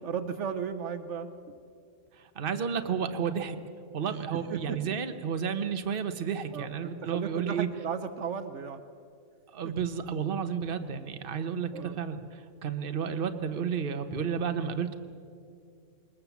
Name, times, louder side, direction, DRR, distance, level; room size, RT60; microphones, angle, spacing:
voice 1, 0.0-1.3 4.5-4.8 6.5-8.8 9.6-9.7 11.7-12.0, right 7 dB, 70° right, 9 dB, 1.1 m, -35 dB
voice 2, 2.2-3.6 3.9-7.7 9.5-15.0, right 7 dB, 45° right, 8 dB, 1.1 m, -32 dB
21.5 x 20.0 x 7.1 m, 2.4 s
omnidirectional pair, 1.3 m